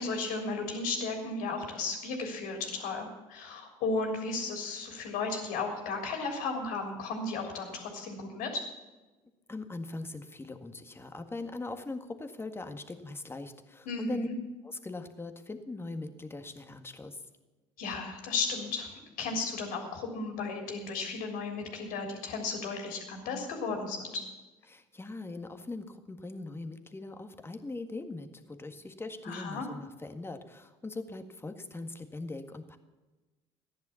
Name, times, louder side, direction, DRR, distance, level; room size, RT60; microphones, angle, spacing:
voice 1, 0.0-8.6 13.8-14.4 17.8-24.2 29.2-29.7, left 3 dB, 70° left, 3 dB, 3.3 m, -34 dB
voice 2, 9.5-14.3 14.6-17.2 24.7-32.8, left 3 dB, 15° left, 7 dB, 1.8 m, -41 dB
14.5 x 10.5 x 7.1 m, 1.2 s
supercardioid pair, 80°, 15 cm